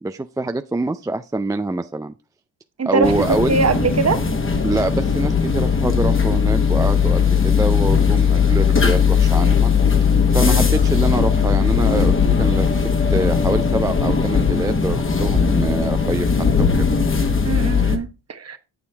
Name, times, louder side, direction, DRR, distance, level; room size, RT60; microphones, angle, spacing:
voice 1, 0.0-2.1 2.8-3.6 4.6-9.7 10.0-12.8 13.1-16.3 16.6-16.9, right 2 dB, 10° right, 0.3 m, -25 dB
voice 2, 2.8-4.2 10.4-10.6 17.4-18.6, right 4 dB, 35° right, 0.9 m, -22 dB
sound 1, 3.0-18.0, left 6 dB, 25° left, 1.2 m, -18 dB
7.1 x 6.9 x 3.4 m
supercardioid pair, 60°, 46 cm